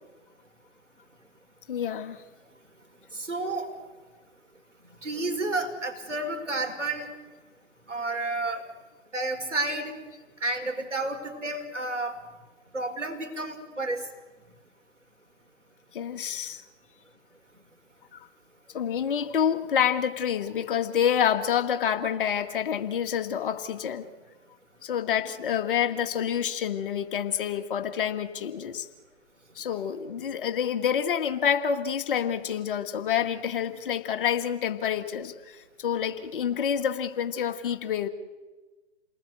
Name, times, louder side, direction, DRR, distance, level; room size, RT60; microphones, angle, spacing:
voice 1, 1.7-2.2 15.9-16.6 18.1-18.3 18.7-24.1 24.8-28.9 29.6-38.1, left 8 dB, 45° left, 8 dB, 2.0 m, -28 dB
voice 2, 3.1-3.7 5.0-7.1 7.9-8.7 9.1-9.9 10.4-12.2 12.7-14.1, right 2 dB, 85° right, 4 dB, 5.2 m, -30 dB
29.0 x 19.5 x 8.2 m, 1.3 s
figure-of-eight pair, 125°, 35 cm